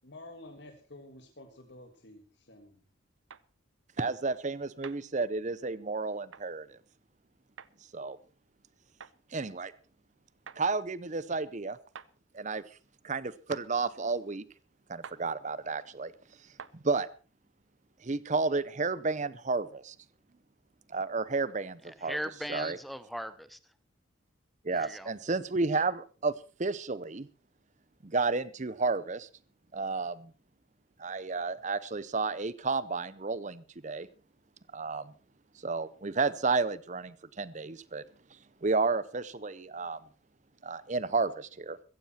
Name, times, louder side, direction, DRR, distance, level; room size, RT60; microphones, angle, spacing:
voice 1, 0.0-2.8, left 1 dB, 55° left, 1.8 m, -50 dB
sound 1, 3.3-3.5 4.8-5.0 6.3-6.5 7.6-7.7 9.0-9.2 10.5-10.6 12.0-12.1 13.5-13.7 15.0-15.2 16.6-16.8, right 7 dB, 70° right, 0.6 m, -46 dB
voice 2, 4.0-6.8 7.9-8.2 9.3-9.7 10.6-11.8 12.3-12.6 13.0-14.4 14.9-16.1 16.4-17.1 18.0-20.0 20.9-22.2 22.5-22.8 24.6-26.3 26.6-27.3 28.0-29.3 29.7-30.3 31.0-34.1 34.7-35.1 35.6-38.0 38.3-40.0 40.6-41.8, right 3 dB, 35° right, 0.7 m, -32 dB
voice 3, 21.8-23.7 24.7-25.1, equal, ahead, 0.8 m, -39 dB
15.0 x 15.0 x 4.3 m
head